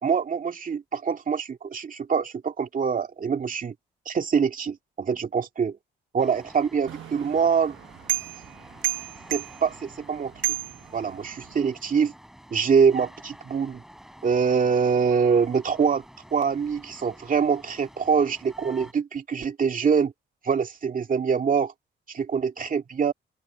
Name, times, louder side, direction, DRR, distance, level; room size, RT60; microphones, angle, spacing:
voice 1, 0.0-3.7 4.1-5.8 6.1-7.8 9.3-10.3 10.9-12.1 12.5-13.8 14.2-16.0 16.3-20.1 20.4-21.7 22.1-23.1, right 6 dB, 45° right, 2.3 m, -24 dB
sound 1, 6.2-18.9, equal, ahead, 4.8 m, -49 dB
sound 2, 6.9-11.6, right 16 dB, 75° right, 1.5 m, -33 dB
open air
cardioid pair, 90°, 20 cm